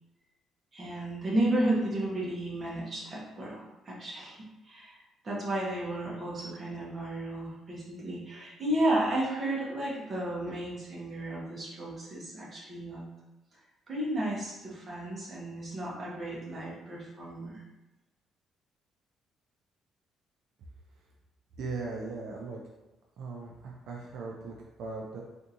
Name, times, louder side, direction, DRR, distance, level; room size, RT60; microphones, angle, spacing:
voice 1, 0.7-4.4 4.6-5.0 5.2-13.1 13.9-17.6, right 1 dB, 30° right, -5 dB, 1.0 m, -33 dB
voice 2, 21.6-22.6 23.2-25.2, right 3 dB, 70° right, -1 dB, 0.4 m, -38 dB
3.5 x 2.6 x 2.8 m, 1.0 s
cardioid pair, 145°, 0 cm